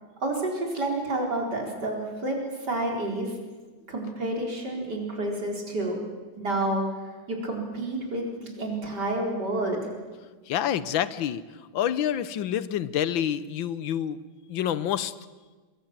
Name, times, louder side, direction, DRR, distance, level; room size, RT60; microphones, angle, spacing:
voice 1, 0.2-2.4 2.7-3.3 3.9-6.0 6.4-6.8 7.3-9.8, right 2 dB, 60° right, 1 dB, 4.9 m, -29 dB
voice 2, 10.5-11.4 11.7-14.2 14.5-15.1, left 10 dB, 85° left, 16 dB, 1.7 m, -27 dB
24.0 x 22.5 x 7.5 m, 1.3 s
omnidirectional pair, 2.1 m